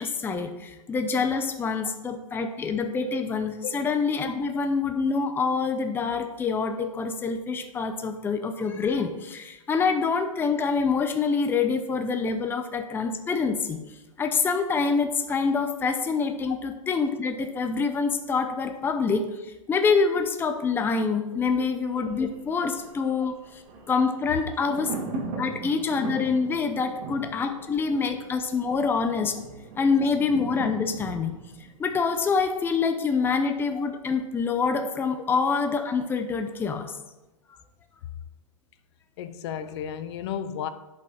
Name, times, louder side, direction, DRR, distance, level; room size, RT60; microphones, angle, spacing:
voice 1, 0.0-13.8 14.2-23.6 23.9-24.9 25.4-29.3 29.8-31.4 31.8-37.0, left 5 dB, 10° left, 0.6 m, -26 dB
Thunder, 21.8-32.7 33.0-33.1, right 4 dB, 45° right, 2.3 m, -40 dB
voice 2, 39.2-40.7, left 8 dB, 50° left, 0.6 m, -34 dB
10.5 x 5.5 x 4.3 m
hypercardioid pair, 125°, 18 cm